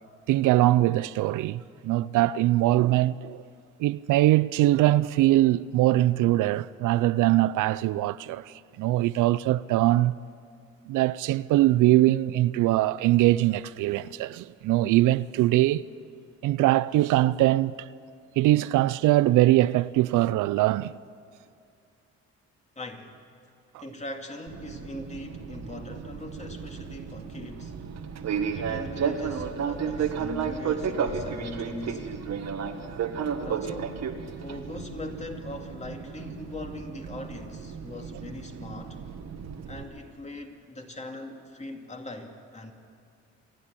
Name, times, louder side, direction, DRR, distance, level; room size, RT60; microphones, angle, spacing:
voice 1, 0.3-3.4 3.8-10.1 10.9-15.8 16.4-17.7 18.4-20.9, right 15 dB, 85° right, 0.5 m, -22 dB
voice 2, 22.8-23.2 23.8-27.7 28.5-32.3 33.4-34.1 34.4-39.0 39.7-42.7, left 2 dB, 20° left, 2.6 m, -40 dB
Fixed-wing aircraft airplane, 24.5-39.8, right 6 dB, 60° right, 1.7 m, -33 dB
27.5 x 10.0 x 9.9 m
cardioid pair, 90°, 30 cm